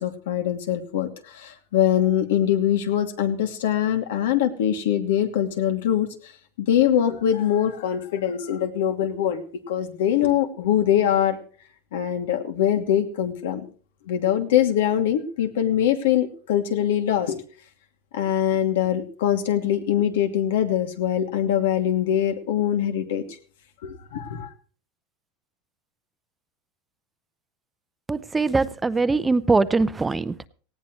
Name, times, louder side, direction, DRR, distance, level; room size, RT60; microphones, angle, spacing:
voice 1, 0.0-6.1 6.6-11.4 11.9-13.7 14.1-17.4 18.1-23.2 23.8-24.5, left 10 dB, 85° left, 7 dB, 2.6 m, -23 dB
voice 2, 28.1-30.5, right 3 dB, 10° right, 15 dB, 0.6 m, -22 dB
18.5 x 16.5 x 3.2 m, 0.41 s
supercardioid pair, 145°, 0 cm